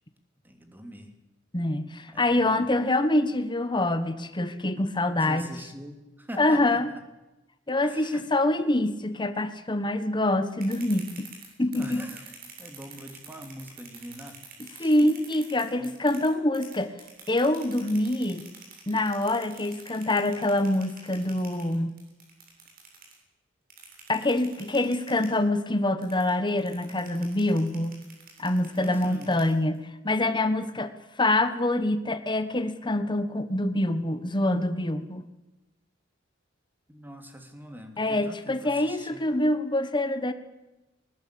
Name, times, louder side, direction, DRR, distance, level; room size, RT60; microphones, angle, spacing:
voice 1, 0.4-1.1 2.1-2.7 5.2-7.0 7.8-8.2 11.7-12.3 12.6-14.4 14.8-15.0 15.8-15.9 28.8-29.4 36.9-39.3, equal, 10° right, 5 dB, 3.1 m, -43 dB
voice 2, 1.5-5.5 6.4-6.9 7.7-11.3 11.6-12.1 14.6-16.9 17.3-18.4 18.9-21.9 24.1-27.9 28.4-29.8 30.0-30.9 31.2-35.2 38.0-40.3, left 1 dB, 25° left, 10 dB, 1.3 m, -25 dB
sound 1, 10.4-16.3 16.5-23.1 23.7-25.4 26.0-29.8, right 6 dB, 50° right, 7.4 m, -47 dB
20.0 x 19.0 x 8.6 m, 1.0 s
head